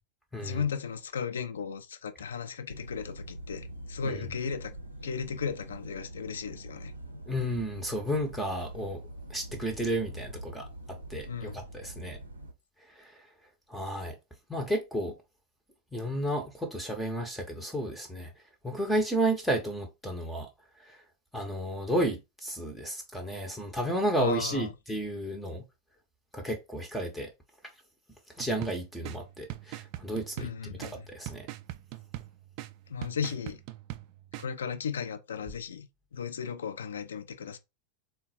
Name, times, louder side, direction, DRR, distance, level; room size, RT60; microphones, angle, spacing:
voice 1, 0.4-4.7 5.0-6.9 11.3-11.6 24.2-24.7 30.4-31.1 32.9-33.6 34.4-37.6, left 6 dB, 65° left, 0.4 m, -35 dB
sound 1, 2.7-12.5, right 1 dB, 75° right, 0.6 m, -44 dB
voice 2, 7.3-9.0 9.3-12.2 12.9-13.2 13.7-14.2 14.5-15.2 15.9-18.3 18.6-20.5 20.8-21.0 21.3-25.6 26.3-27.3 28.4-30.5 30.8-31.5, right 1 dB, 5° left, 0.6 m, -32 dB
sound 2, 28.4-34.5, right 15 dB, 45° right, 0.3 m, -43 dB
3.6 x 2.2 x 4.1 m
figure-of-eight pair, 90°, 0 cm